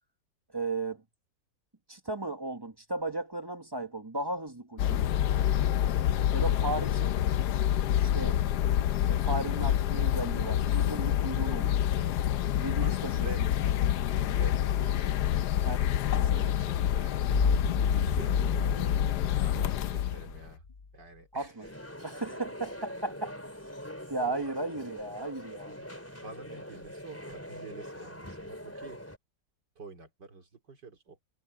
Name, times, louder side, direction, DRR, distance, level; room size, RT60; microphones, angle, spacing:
voice 1, 0.5-1.0 1.9-5.1 6.3-7.1 8.0-8.4 9.1-12.1 12.6-13.3 15.6-15.8 16.2-16.5 21.3-21.7 22.0-23.4 24.1-25.7, right 2 dB, 15° right, 1.1 m, -35 dB
sound 1, 4.8-20.5, left 11 dB, 70° left, 1.2 m, -27 dB
voice 2, 12.8-13.4 14.2-15.2 16.1-17.2 17.8-20.7 20.9-21.7 25.7-25.8 26.2-29.0 29.8-31.2, right 3 dB, 70° right, 3.9 m, -48 dB
sound 2, 17.3-20.8, left 4 dB, 35° left, 1.0 m, -33 dB
sound 3, 21.6-29.2, equal, 5° left, 3.9 m, -43 dB
omnidirectional pair, 1.9 m